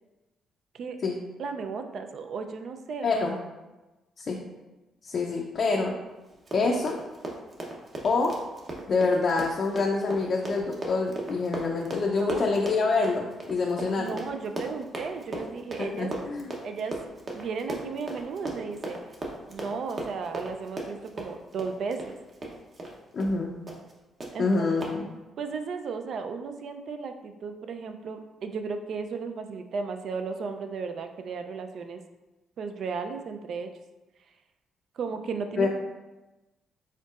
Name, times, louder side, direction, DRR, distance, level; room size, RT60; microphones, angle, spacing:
voice 1, 1.4-3.1 12.2-12.5 14.0-16.1 16.6-16.9 17.3-19.0 19.5-22.2 24.3-24.7 25.4-32.0 32.6-33.7 34.9-35.7, right 5 dB, 65° right, 7 dB, 0.4 m, -35 dB
voice 2, 3.0-3.3 4.2-4.4 5.0-5.9 6.5-7.0 8.0-8.3 8.9-14.1 15.8-16.5 23.1-23.5 24.4-25.0 35.6-35.7, left 3 dB, 50° left, -1 dB, 0.5 m, -26 dB
Run, 6.3-22.9 23.2-23.4 23.7-23.9 24.2-24.3 24.8-24.9, right 2 dB, 40° right, 0.8 m, -37 dB
4.4 x 3.9 x 2.4 m, 1.1 s
cardioid pair, 90°, 0 cm